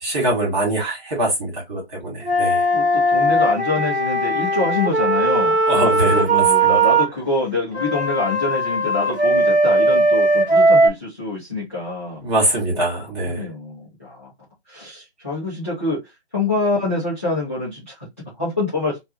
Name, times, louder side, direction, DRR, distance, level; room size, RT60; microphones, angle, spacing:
voice 1, 0.0-2.6 5.7-6.7 12.2-13.4, right 1 dB, 25° right, 1.5 m, -23 dB
Wind instrument woodwind instrument, 2.2-7.1 7.7-10.9, right 1 dB, 5° right, 1.0 m, -18 dB
voice 2, 2.7-12.2 12.7-12.8 13.2-14.3 14.7-19.0, left 3 dB, 15° left, 0.4 m, -26 dB
3.0 x 2.2 x 2.8 m
figure-of-eight pair, 150°, 33 cm